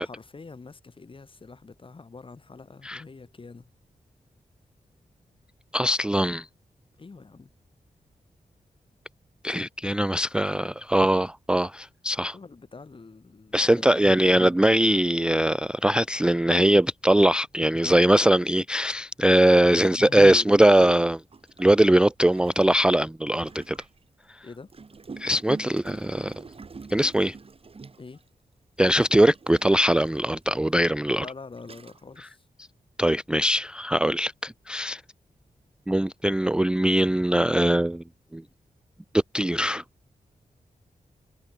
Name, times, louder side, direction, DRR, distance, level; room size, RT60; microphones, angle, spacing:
voice 1, 0.0-3.7 7.0-7.5 12.3-14.4 19.8-20.8 24.4-24.7 25.2-25.3 28.0-28.2 31.1-32.5, left 4 dB, 35° left, 2.3 m, -45 dB
voice 2, 5.7-6.5 9.4-12.4 13.5-21.2 21.6-23.8 25.2-26.3 26.9-27.4 28.8-31.3 33.0-35.0 35.9-38.0 38.3-38.4 39.1-39.8, right 1 dB, 5° right, 0.4 m, -21 dB
Gurgling, 20.4-20.5 21.3-24.0 24.7-28.3 28.9-30.4 31.1-31.2 31.6-32.2, right 4 dB, 40° right, 2.3 m, -45 dB
wide cardioid pair, 115°, 14 cm